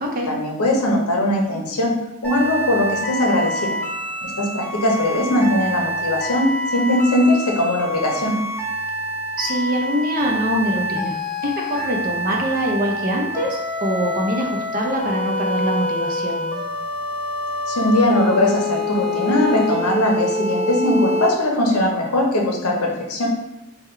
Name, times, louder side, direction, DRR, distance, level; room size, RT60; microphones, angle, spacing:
voice 1, 0.3-1.9 2.2-3.8 4.2-8.4 17.7-23.3, left 1 dB, 85° left, 0 dB, 0.8 m, -20 dB
sound 1, 2.2-21.3, left 1 dB, 5° left, 0.7 m, -26 dB
voice 2, 9.4-16.6, equal, 40° right, 0 dB, 0.6 m, -24 dB
3.6 x 2.3 x 4.3 m, 0.93 s
head